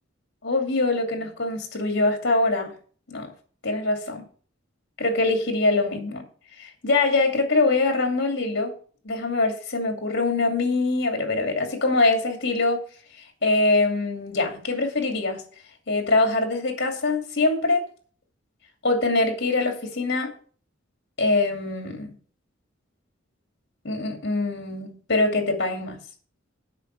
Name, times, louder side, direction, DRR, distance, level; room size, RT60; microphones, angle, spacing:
voice 1, 0.4-2.8 3.1-3.3 3.6-4.3 5.0-6.2 6.6-8.7 9.0-12.8 13.2-15.4 15.9-17.8 18.8-20.3 21.2-22.1 23.8-26.0, left 2 dB, 60° left, 2.6 m, -23 dB
8.1 x 5.9 x 7.4 m
head